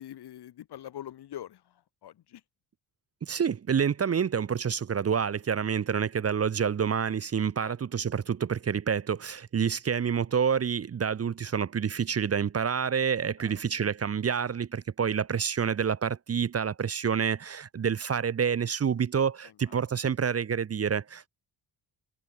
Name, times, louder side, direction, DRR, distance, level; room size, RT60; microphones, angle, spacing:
voice 1, 0.0-1.6 2.0-2.4 7.6-7.7 13.4-13.5 19.7-19.8, left 11 dB, 60° left, 1.2 m, -43 dB
voice 2, 3.2-21.3, right 7 dB, 35° right, 0.7 m, -28 dB
supercardioid pair, 65°, 44 cm